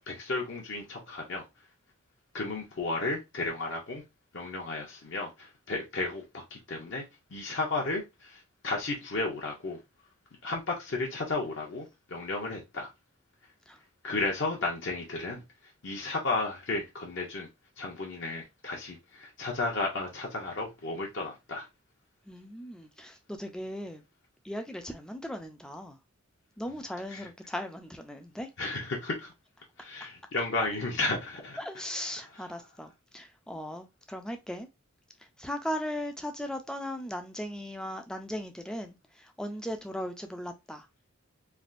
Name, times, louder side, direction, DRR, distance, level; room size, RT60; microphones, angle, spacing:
voice 1, 0.1-1.4 2.3-4.0 4.3-6.2 6.5-7.0 7.3-8.0 8.3-8.4 8.6-9.8 10.4-11.8 12.1-12.9 14.0-15.4 15.8-17.5 17.8-21.7 27.1-27.3 28.6-29.3 29.8-31.8 32.3-32.5, left 2 dB, 60° left, 0.7 m, -33 dB
voice 2, 22.3-24.0 24.5-26.0 26.6-28.5 31.6-34.7 35.4-39.0 39.4-40.8, equal, 5° left, 0.3 m, -37 dB
3.3 x 2.4 x 2.4 m
head